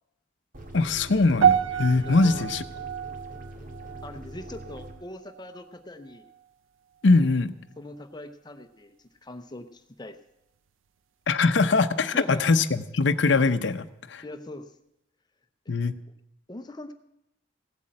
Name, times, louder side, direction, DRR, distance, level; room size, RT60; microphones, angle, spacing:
sound 1, 0.5-4.9, right 1 dB, 45° right, 1.8 m, -43 dB
voice 1, 0.7-2.6 7.0-7.5 11.3-14.2 15.7-15.9, left 3 dB, 65° left, 8 dB, 0.6 m, -22 dB
sound 2, 1.4-5.8 6.1-6.5 7.1-7.2, right 8 dB, 90° right, 0.5 m, -28 dB
voice 2, 2.0-2.5 4.0-6.3 7.8-10.2 12.0-12.5 14.2-14.7 16.5-16.9, left 1 dB, 20° left, 9 dB, 0.7 m, -41 dB
16.5 x 8.3 x 7.6 m, 0.83 s
head